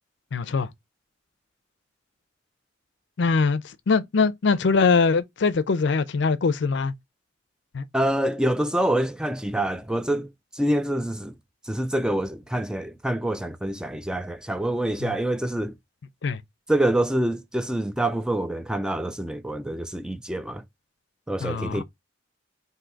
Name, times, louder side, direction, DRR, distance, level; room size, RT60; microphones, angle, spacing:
voice 1, 0.3-0.7 3.2-3.6 3.9-6.9 7.7-7.8 15.0-15.1 16.2-16.4 21.4-21.8, left 4 dB, 65° left, 0.5 m, -22 dB
voice 2, 7.9-10.3 10.5-11.3 11.7-15.7 16.7-20.6 21.3-21.8, right 1 dB, 5° right, 0.3 m, -26 dB
3.8 x 2.7 x 4.4 m
head